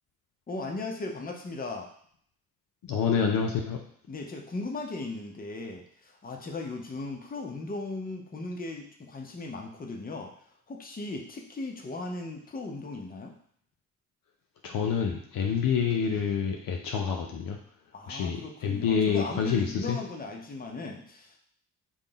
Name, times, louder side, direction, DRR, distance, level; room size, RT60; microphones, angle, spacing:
voice 1, 0.5-1.9 4.1-10.3 10.7-13.3 17.9-21.4, left 2 dB, 20° left, 2 dB, 0.8 m, -37 dB
voice 2, 2.8-3.8 14.6-17.6 18.1-20.0, left 6 dB, 55° left, 1 dB, 0.6 m, -27 dB
3.6 x 2.3 x 4.0 m, 0.63 s
hypercardioid pair, 50°, 42 cm